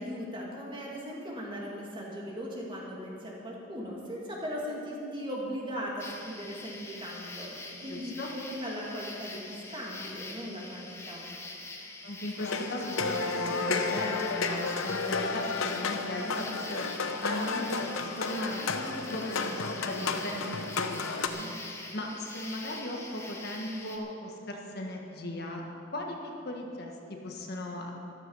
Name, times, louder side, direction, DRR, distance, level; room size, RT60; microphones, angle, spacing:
voice 1, 0.0-11.2, equal, 25° right, -3 dB, 2.5 m, -38 dB
sound 1, 6.0-24.0, left 2 dB, 15° left, 1.1 m, -44 dB
voice 2, 7.8-8.3 12.0-25.6 25.9-27.9, left 1 dB, 50° left, 0 dB, 1.6 m, -38 dB
sound 2, 12.4-21.3, left 4 dB, 80° left, 0.9 m, -32 dB
14.0 x 13.0 x 5.6 m, 2.7 s
head